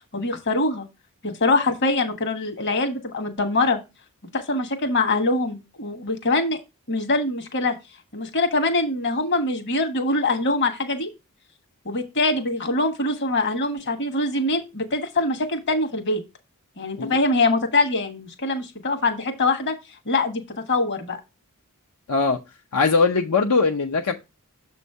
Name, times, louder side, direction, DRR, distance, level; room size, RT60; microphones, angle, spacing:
voice 1, 0.1-0.9 1.2-3.8 4.3-6.6 6.9-7.8 8.1-11.1 11.8-16.2 16.8-19.7 20.1-20.4 20.7-21.2, left 2 dB, 50° left, 1.2 m, -23 dB
voice 2, 22.1-22.4 22.7-24.1, left 4 dB, 85° left, 0.7 m, -20 dB
7.1 x 3.2 x 5.4 m
head